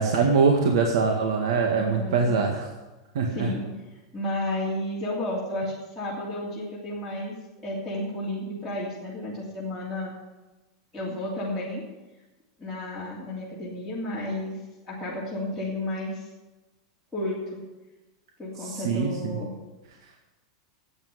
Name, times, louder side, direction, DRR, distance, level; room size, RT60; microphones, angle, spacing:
voice 1, 0.0-2.7 3.1-3.5 18.6-19.4, right 5 dB, 75° right, 2 dB, 1.9 m, -23 dB
voice 2, 1.8-2.4 3.3-3.7 4.1-7.3 7.6-10.1 10.9-11.8 12.6-14.6 14.8-16.3 17.1-17.6 18.4-19.5, left 1 dB, ahead, -11 dB, 3.1 m, -32 dB
11.5 x 8.8 x 9.7 m, 1.1 s
supercardioid pair, 165°, 3 cm